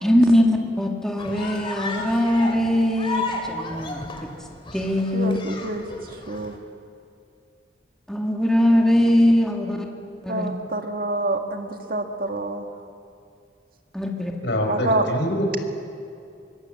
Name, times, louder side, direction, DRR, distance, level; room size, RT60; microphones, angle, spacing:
voice 1, 0.0-4.3 4.7-5.4 8.1-9.9 10.2-10.5 13.9-14.3, left 1 dB, 5° left, 0 dB, 2.1 m, -21 dB
sound 1, 1.2-6.6, left 3 dB, 30° left, 2.4 m, -33 dB
voice 2, 5.1-5.8 6.3-6.5 10.3-12.7 14.7-15.0, right 2 dB, 50° right, 4 dB, 1.8 m, -27 dB
voice 3, 14.4-15.6, equal, 70° left, 2 dB, 4.9 m, -24 dB
24.5 x 21.5 x 7.5 m, 2.5 s
head